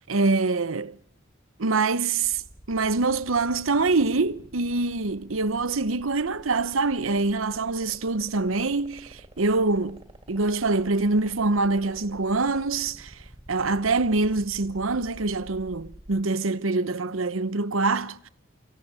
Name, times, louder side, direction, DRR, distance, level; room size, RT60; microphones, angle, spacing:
voice 1, 0.1-1.0 1.6-2.4 2.7-10.0 10.3-13.2 13.5-18.3, right 3 dB, 90° right, 1.0 m, -25 dB
sound 1, 2.2-16.2, right 1 dB, 25° right, 3.0 m, -48 dB
25.0 x 15.5 x 9.0 m
head